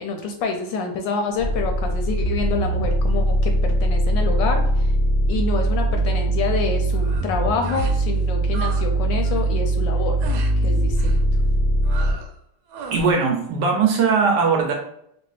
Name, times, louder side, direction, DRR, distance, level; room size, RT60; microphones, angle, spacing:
voice 1, 0.0-4.9 5.3-10.2 10.6-11.2, left 4 dB, 75° left, 4 dB, 1.1 m, -27 dB
sound 1, 1.4-12.1, right 1 dB, 50° left, 0.7 m, -21 dB
sound 2, 6.9-7.3 7.6-8.0 8.3-8.9 9.1-9.5 10.2-10.5 11.0-11.3 11.8-12.3 12.7-13.1, right 4 dB, 90° right, 1.4 m, -35 dB
voice 2, 12.9-14.7, right 5 dB, 70° right, 1 dB, 1.1 m, -19 dB
3.1 x 2.7 x 3.1 m, 0.73 s
omnidirectional pair, 2.2 m